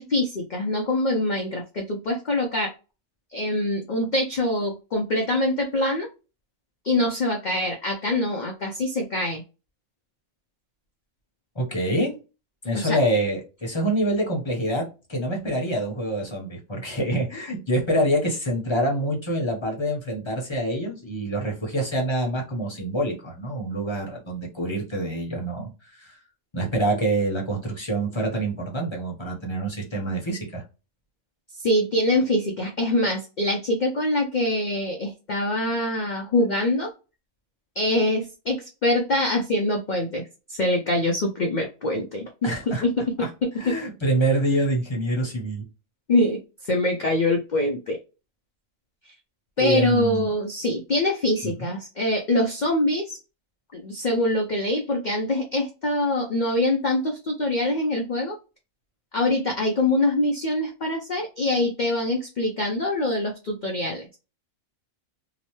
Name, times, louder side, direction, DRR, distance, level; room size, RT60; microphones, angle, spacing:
voice 1, 0.0-2.7 3.3-6.1 6.8-9.4 12.7-13.0 31.6-36.9 37.8-40.2 40.5-43.8 46.1-48.0 49.6-53.2 53.7-58.4 59.1-64.1, left 1 dB, 55° left, 1 dB, 0.5 m, -24 dB
voice 2, 11.6-12.1 12.6-25.7 26.0-26.2 26.5-30.6 42.4-42.8 43.2-43.3 43.6-45.6 49.6-50.3 51.6-51.7, right 1 dB, 25° left, 0 dB, 0.7 m, -26 dB
2.9 x 2.1 x 2.9 m, 0.31 s
omnidirectional pair, 1.4 m